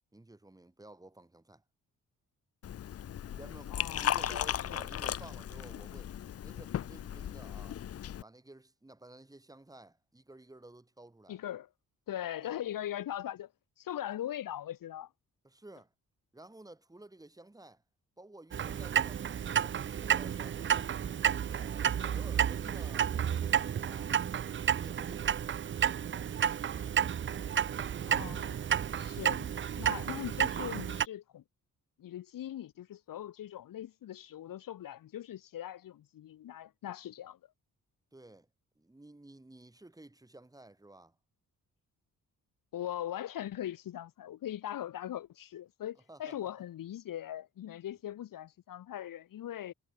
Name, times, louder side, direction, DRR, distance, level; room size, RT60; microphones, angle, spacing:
voice 1, 0.1-1.6 3.3-6.1 6.4-7.8 8.2-11.4 15.4-15.9 16.3-17.8 18.2-21.0 21.4-24.2 24.7-25.6 38.1-38.5 38.8-41.2 46.1-46.5, right 2 dB, 10° right, 5.2 m, -53 dB
Liquid, 2.6-8.2, left 10 dB, 45° left, 0.6 m, -36 dB
voice 2, 3.7-4.8 11.3-11.7 12.1-13.5 13.8-15.1 28.1-28.6 29.0-29.5 29.8-31.4 32.0-37.4 42.7-49.7, left 11 dB, 70° left, 1.1 m, -40 dB
Clock, 18.5-31.1, right 8 dB, 35° right, 0.5 m, -31 dB
wide cardioid pair, 170°, 34 cm